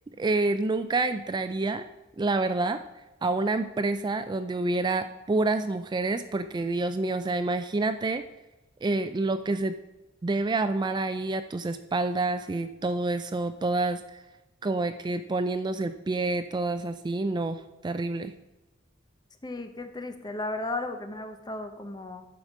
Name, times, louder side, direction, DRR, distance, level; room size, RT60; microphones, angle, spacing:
voice 1, 0.2-1.9 2.2-2.8 3.2-8.2 8.8-9.8 10.2-14.2 14.6-18.3, right 2 dB, 25° right, 10 dB, 0.3 m, -28 dB
voice 2, 19.4-22.3, left 2 dB, 20° left, 7 dB, 0.9 m, -35 dB
11.5 x 5.1 x 6.1 m, 1.1 s
head